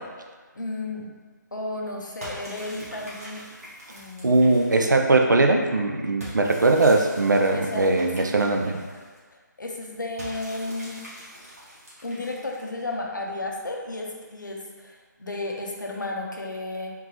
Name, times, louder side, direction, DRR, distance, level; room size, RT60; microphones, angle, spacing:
voice 1, 0.5-1.1 1.5-3.4 3.9-4.4 7.5-7.9 8.2-8.3 9.6-11.0 12.0-16.9, left 2 dB, 75° left, 0 dB, 0.6 m, -33 dB
sound 1, 2.2-5.1 6.2-9.2 10.2-12.8, equal, 50° right, 1.4 m, -43 dB
voice 2, 4.2-8.8, right 2 dB, 70° right, 3 dB, 0.4 m, -20 dB
3.7 x 2.6 x 2.9 m, 1.5 s
figure-of-eight pair, 145°, 10 cm